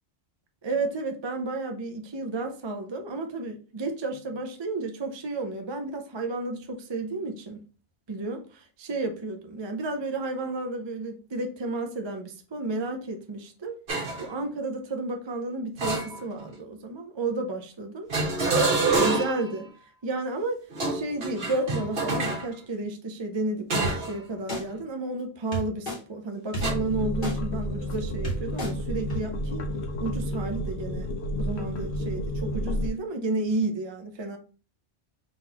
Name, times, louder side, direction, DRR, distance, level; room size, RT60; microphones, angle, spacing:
voice 1, 0.6-7.6 8.1-13.7 14.2-18.1 19.0-19.7 20.0-20.6 20.9-29.6 30.0-31.1 31.4-34.4, right 2 dB, 35° right, 4 dB, 0.5 m, -32 dB
sound 1, 13.9-14.2 15.8-16.5 18.1-19.5 20.7-22.4 23.7-24.2 24.5-24.8 26.6-26.7, right 3 dB, 60° right, 1.7 m, -26 dB
sound 2, 23.8-23.9 24.5-24.6 25.5-26.0 26.5-26.6 27.2-27.3 27.9-28.0 28.2-28.7 29.1-29.2, right 1 dB, 50° left, 1.8 m, -31 dB
sound 3, 26.5-32.9, equal, 70° left, 1.0 m, -31 dB
3.9 x 3.9 x 2.8 m, 0.37 s
omnidirectional pair, 1.2 m